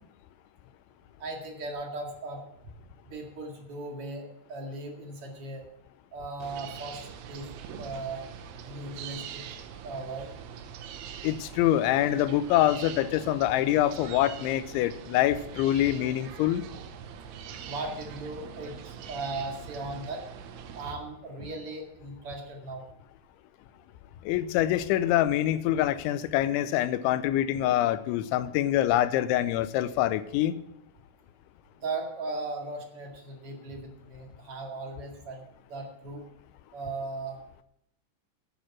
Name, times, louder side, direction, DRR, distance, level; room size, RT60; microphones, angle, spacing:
voice 1, 1.2-2.4 3.1-5.7 6.1-7.5 7.8-8.2 8.6-9.4 9.8-10.3 17.6-20.2 20.7-22.8 31.7-35.4 35.7-36.2 36.7-37.4, right 2 dB, 45° right, 1 dB, 2.0 m, -37 dB
sound 1, 6.4-20.9, right 8 dB, 85° right, 3.3 m, -43 dB
voice 2, 11.2-16.6 24.2-30.6, left 13 dB, 85° left, 14 dB, 3.0 m, -25 dB
11.5 x 8.9 x 5.9 m, 0.75 s
omnidirectional pair, 5.3 m